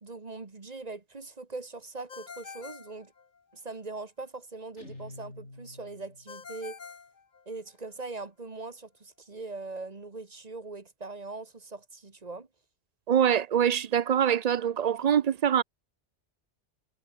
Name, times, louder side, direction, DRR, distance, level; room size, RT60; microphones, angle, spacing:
voice 1, 0.0-3.1 3.5-6.8 7.5-12.5, right 3 dB, 35° right, 1.5 m, -41 dB
Ringtone, 2.1-3.8 6.3-7.9, left 5 dB, 45° left, 1.2 m, -46 dB
Guitar, 4.8-6.5, left 2 dB, 90° left, 6.1 m, -47 dB
voice 2, 13.1-15.6, right 9 dB, 55° right, 0.5 m, -24 dB
omnidirectional pair, 1.2 m